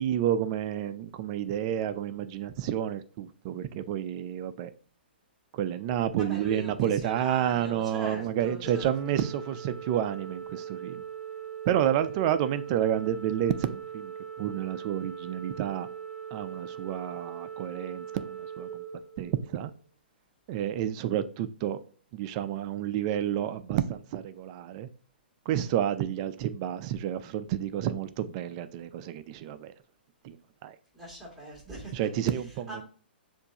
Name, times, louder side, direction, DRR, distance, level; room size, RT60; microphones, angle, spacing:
voice 1, 0.0-4.7 5.5-11.0 11.7-15.9 16.3-18.8 19.2-19.7 20.5-21.8 22.1-24.9 25.5-29.7 30.2-30.4 30.6-30.8 31.9-32.7, right 10 dB, 40° right, 0.4 m, -30 dB
voice 2, 6.2-9.2 30.9-32.0 32.7-32.8, right 1 dB, ahead, 2.2 m, -41 dB
Organ, 8.6-19.7, right 8 dB, 20° left, 0.8 m, -41 dB
6.6 x 2.6 x 2.8 m
hypercardioid pair, 125°, 6 cm